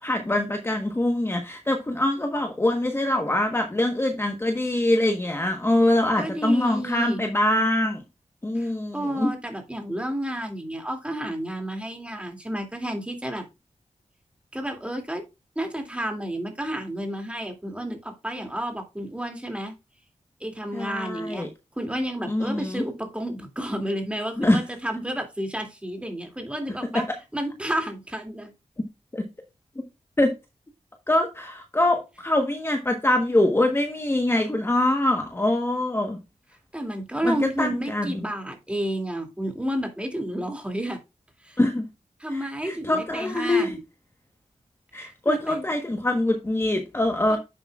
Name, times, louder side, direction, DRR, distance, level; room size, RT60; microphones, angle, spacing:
voice 1, 0.0-8.0 8.4-9.3 20.7-21.5 22.3-22.8 24.4-24.6 29.1-29.3 30.2-30.3 31.1-36.2 37.2-38.2 41.6-41.8 42.3-43.8 44.9-47.4, left 1 dB, 20° left, 1.2 m, -24 dB
voice 2, 6.2-7.3 8.5-13.5 14.5-15.2 15.6-19.7 20.4-21.5 21.8-27.1 27.3-28.5 36.7-41.0 41.4-41.6 42.2-43.8 44.9-45.6 47.3-47.4, right 1 dB, 10° right, 2.6 m, -31 dB
10.5 x 7.7 x 2.4 m
wide cardioid pair, 120°, 12 cm